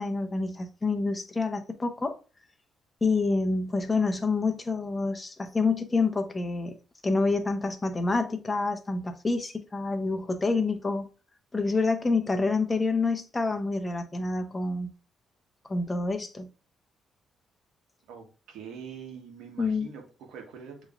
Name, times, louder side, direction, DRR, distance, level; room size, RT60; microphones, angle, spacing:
voice 1, 0.0-2.2 3.0-6.7 7.0-11.1 11.5-14.9 15.7-16.5 19.6-19.9, left 3 dB, 25° left, 0.8 m, -27 dB
voice 2, 18.1-20.9, right 6 dB, 90° right, 1.2 m, -44 dB
6.9 x 3.0 x 2.4 m
cardioid pair, 90°, 0 cm